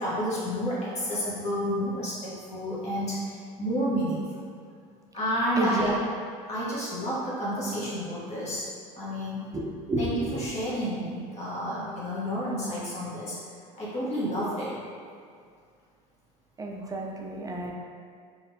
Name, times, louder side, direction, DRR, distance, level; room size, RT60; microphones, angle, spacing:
voice 1, 0.0-4.2 5.1-6.0 6.5-8.7 9.0-9.5 10.0-13.4 13.8-14.8, equal, 40° left, -8 dB, 1.3 m, -30 dB
voice 2, 5.6-6.0 9.5-10.4 16.6-17.7, right 1 dB, 20° right, 0 dB, 0.4 m, -30 dB
3.8 x 2.4 x 2.8 m, 2.2 s
supercardioid pair, 85°, 18 cm